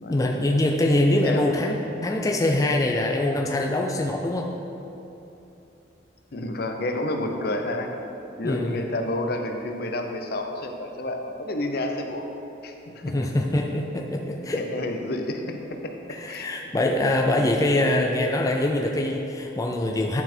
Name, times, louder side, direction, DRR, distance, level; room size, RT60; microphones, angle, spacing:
voice 1, 0.1-4.5 8.4-8.8 13.0-14.7 16.1-20.2, left 1 dB, 20° left, 1 dB, 0.4 m, -24 dB
voice 2, 1.2-1.6 6.3-7.9 8.4-12.3 12.6-13.2 14.4-15.6 15.8-16.5, left 1 dB, 60° left, 4 dB, 0.6 m, -30 dB
10.5 x 4.1 x 4.4 m, 2.9 s
head